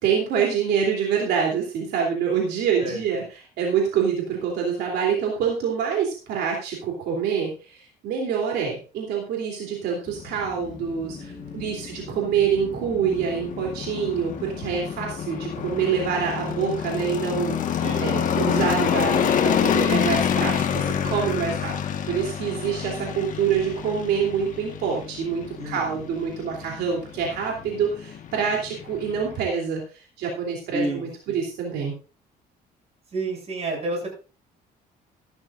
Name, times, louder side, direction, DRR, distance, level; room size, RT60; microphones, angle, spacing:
voice 1, 0.0-3.2 3.6-21.7 22.0-31.9, right 7 dB, 80° right, -1 dB, 3.2 m, -26 dB
sound 1, 10.1-29.4, left 8 dB, 50° left, 1.5 m, -28 dB
voice 2, 11.1-12.2 17.8-18.1 25.6-26.1 30.7-31.4 33.1-34.2, right 2 dB, 40° right, 0 dB, 7.2 m, -31 dB
14.5 x 12.0 x 2.6 m, 0.35 s
cardioid pair, 110°, 17 cm